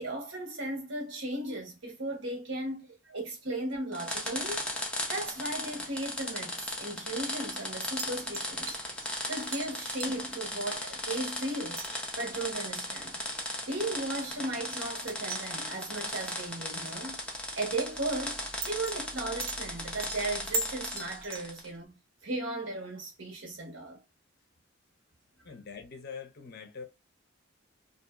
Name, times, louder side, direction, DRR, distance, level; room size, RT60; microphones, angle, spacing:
voice 1, 0.0-4.6 5.1-8.8 9.3-11.8 12.2-13.2 13.7-17.2 17.6-24.0, right 2 dB, 75° right, 1.1 m, -36 dB
sound 1, 3.9-21.7, left 1 dB, 5° left, 0.6 m, -37 dB
sound 2, 7.9-11.4 11.7-21.7, right 2 dB, 50° right, 0.6 m, -41 dB
voice 2, 25.4-26.8, left 5 dB, 55° left, 0.6 m, -43 dB
2.8 x 2.5 x 2.3 m
head